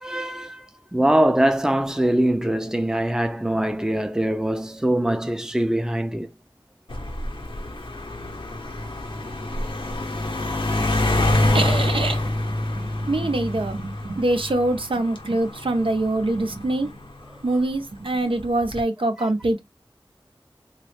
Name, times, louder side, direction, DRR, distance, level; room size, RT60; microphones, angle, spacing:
voice 1, 0.0-0.7 0.9-6.3, right 1 dB, 5° right, 0.4 m, -22 dB
sound 1, 6.9-17.6 18.4-18.8, left 1 dB, 80° left, 0.8 m, -26 dB
voice 2, 11.5-16.9 17.4-19.6, right 2 dB, 85° right, 0.6 m, -24 dB
3.1 x 2.3 x 3.2 m
wide cardioid pair, 45°, 9 cm